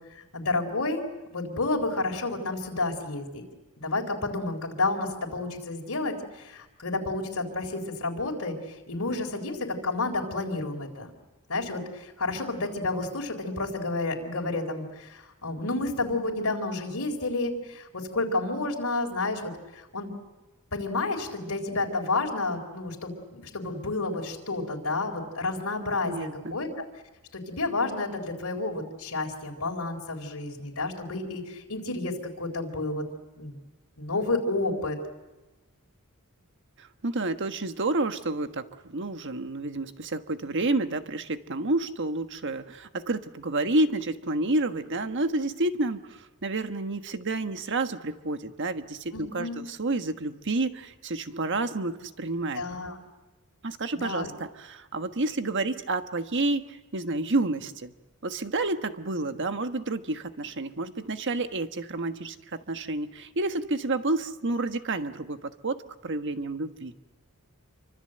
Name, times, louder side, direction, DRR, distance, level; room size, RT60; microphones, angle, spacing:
voice 1, 0.2-1.0 1.3-3.4 3.8-11.1 11.5-20.1 20.7-26.7 27.3-33.0 33.4-33.6 34.0-35.0 49.1-49.6 52.5-53.0 54.0-54.3, left 2 dB, 70° left, 0 dB, 4.1 m, -30 dB
voice 2, 26.0-26.6 36.8-52.6 53.6-57.9 58.2-66.9, right 2 dB, 55° right, 8 dB, 1.4 m, -30 dB
27.5 x 25.0 x 7.9 m, 1.1 s
head